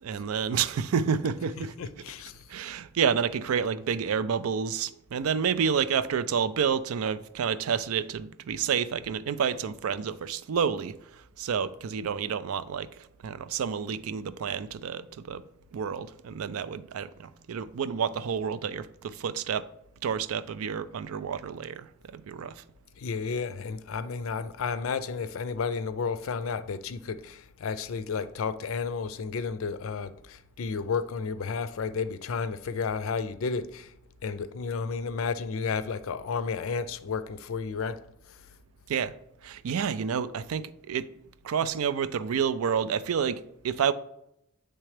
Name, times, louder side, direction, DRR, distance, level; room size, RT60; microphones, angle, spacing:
voice 1, 0.0-1.7 2.5-15.4 15.7-19.7 20.0-22.6 38.9-39.1 39.4-41.1 41.4-43.9, right 7 dB, 90° right, 0.4 m, -29 dB
voice 2, 1.5-2.5 23.0-33.9 34.2-38.0 38.3-38.5, left 5 dB, 70° left, 0.4 m, -32 dB
8.6 x 3.3 x 3.2 m
head